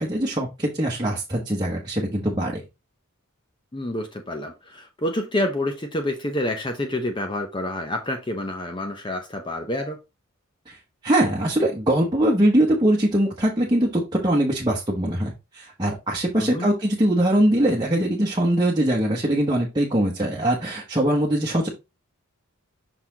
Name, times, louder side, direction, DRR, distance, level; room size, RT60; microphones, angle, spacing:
voice 1, 0.0-2.6 10.7-10.8 11.0-21.7, right 1 dB, 20° right, 1.1 m, -22 dB
voice 2, 3.7-10.0 16.4-16.7, left 1 dB, 20° left, 0.7 m, -28 dB
6.0 x 4.0 x 3.9 m
head